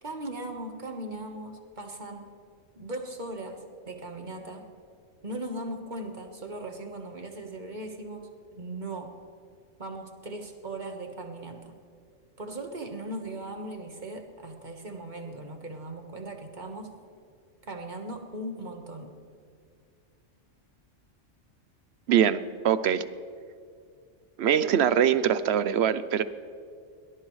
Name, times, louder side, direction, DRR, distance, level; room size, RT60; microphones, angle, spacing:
voice 1, 0.0-2.3 2.7-4.6 5.2-9.1 9.8-11.7 12.4-16.9 17.6-19.1, right 1 dB, 40° right, 4 dB, 1.5 m, -38 dB
voice 2, 22.1-23.1 24.4-26.2, right 9 dB, 65° right, 14 dB, 0.8 m, -23 dB
22.0 x 18.5 x 3.2 m, 2.3 s
omnidirectional pair, 1.3 m